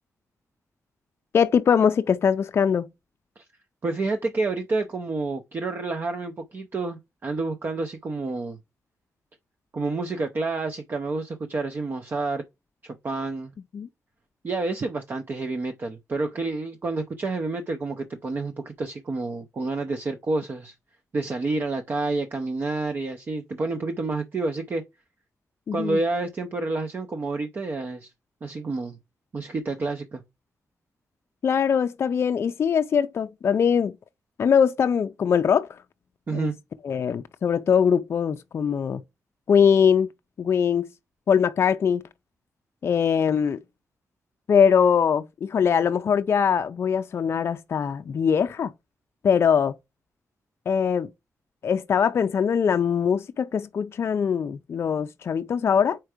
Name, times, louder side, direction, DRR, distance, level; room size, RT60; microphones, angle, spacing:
voice 1, 1.3-2.9 13.7-13.9 25.7-26.0 31.4-33.9 34.4-35.7 36.3-36.5 36.8-39.0 39.5-40.1 40.4-40.9 41.3-42.0 42.8-43.6 44.5-48.7 49.2-49.8 50.7-51.1 51.6-56.0, left 7 dB, 45° left, 0.4 m, -22 dB
voice 2, 3.8-8.6 9.7-12.4 12.8-13.5 14.4-20.7 21.1-24.8 25.7-28.1 28.4-29.0 29.3-30.2 36.3-36.5, right 3 dB, 35° right, 0.5 m, -29 dB
4.5 x 4.4 x 4.8 m
wide cardioid pair, 170°, 6 cm